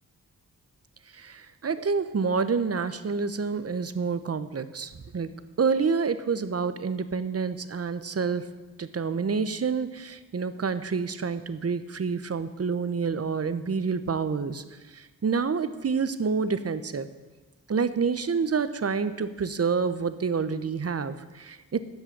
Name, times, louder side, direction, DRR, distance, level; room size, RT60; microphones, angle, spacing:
voice 1, 1.1-5.3 5.6-8.5 8.8-14.6 14.9-17.1 17.7-21.8, right 5 dB, 40° right, 12 dB, 0.8 m, -28 dB
13.0 x 5.6 x 8.6 m, 1.2 s
cardioid pair, 70°, 36 cm